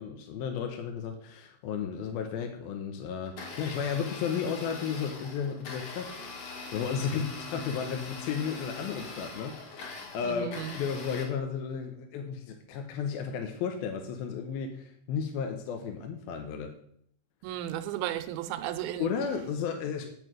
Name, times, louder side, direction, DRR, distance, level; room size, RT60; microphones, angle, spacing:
voice 1, 0.0-6.1 6.7-16.7 19.0-20.1, left 7 dB, 75° left, 5 dB, 2.7 m, -33 dB
Domestic sounds home sounds, 3.2-11.2, left 4 dB, 55° left, 3.0 m, -42 dB
voice 2, 10.2-10.8 17.4-19.1, right 11 dB, 80° right, 10 dB, 2.4 m, -34 dB
8.0 x 7.0 x 6.2 m, 0.66 s
omnidirectional pair, 4.4 m